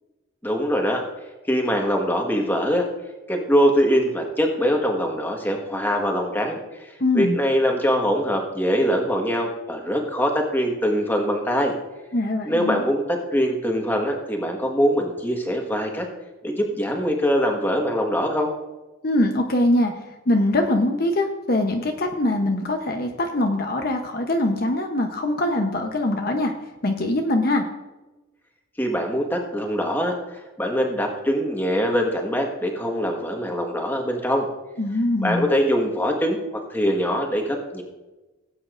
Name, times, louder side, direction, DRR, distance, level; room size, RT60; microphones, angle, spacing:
voice 1, 0.4-1.0 1.5-2.8 3.3-11.7 12.4-16.0 16.4-18.5 28.8-34.5 35.2-36.4 36.7-37.8, equal, 10° left, 2 dB, 1.4 m, -23 dB
voice 2, 7.0-7.4 12.1-12.8 19.0-19.9 20.3-26.5 26.8-27.6 34.8-35.5, left 1 dB, 45° left, 4 dB, 0.8 m, -22 dB
17.5 x 8.7 x 2.5 m, 1.1 s
head